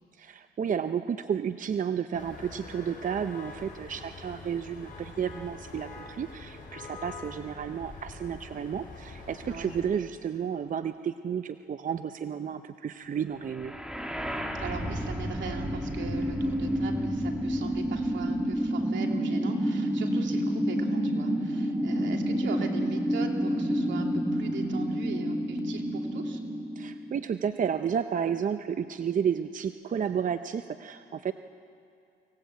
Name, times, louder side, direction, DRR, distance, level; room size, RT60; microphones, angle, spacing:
voice 1, 0.2-13.7 26.8-31.3, right 7 dB, 40° right, 10 dB, 0.7 m, -32 dB
sound 1, 2.1-9.9, left 3 dB, 45° left, 5.5 m, -44 dB
sound 2, 13.5-27.5, equal, 5° right, 2.2 m, -29 dB
voice 2, 14.6-26.4, right 5 dB, 70° right, 2 dB, 2.8 m, -40 dB
25.0 x 17.5 x 8.1 m, 2.5 s
cardioid pair, 90°, 20 cm